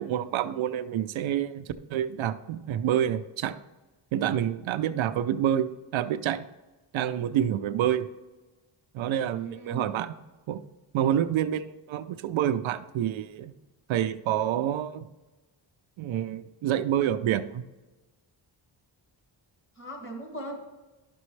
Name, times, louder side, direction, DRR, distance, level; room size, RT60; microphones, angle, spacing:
voice 1, 0.0-3.6 4.1-5.7 5.9-6.4 6.9-8.1 8.9-10.1 10.5-10.6 10.9-13.5 13.9-15.1 16.0-17.6, right 10 dB, 80° right, 10 dB, 0.6 m, -28 dB
voice 2, 9.3-10.0 19.8-20.6, right 1 dB, 25° left, 1 dB, 1.8 m, -39 dB
11.5 x 6.1 x 3.2 m, 1.2 s
wide cardioid pair, 170°, 46 cm